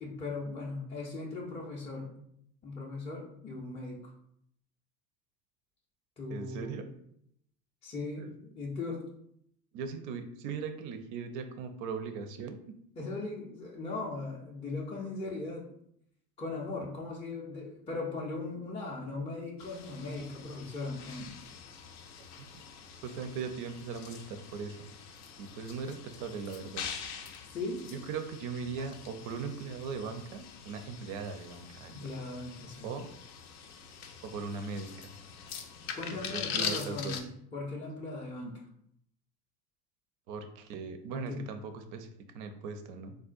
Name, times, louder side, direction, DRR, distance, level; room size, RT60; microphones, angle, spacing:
voice 1, 0.0-2.1 2.6-4.1 6.2-6.8 7.8-9.0 13.0-15.6 16.4-21.3 27.5-27.8 28.8-28.9 31.9-32.9 35.9-37.3 37.5-38.6 41.1-41.4, left 3 dB, 15° left, -4 dB, 0.4 m, -38 dB
voice 2, 6.3-6.9 8.2-8.3 9.7-12.7 22.4-22.5 23.0-24.9 25.4-26.9 27.9-31.9 32.8-33.1 34.2-35.1 36.3-37.2 40.3-43.1, right 5 dB, 45° right, 8 dB, 0.4 m, -39 dB
sound 1, 19.6-37.2, left 7 dB, 65° left, 0.5 m, -43 dB
3.6 x 2.2 x 2.4 m, 0.70 s
hypercardioid pair, 75°, 49 cm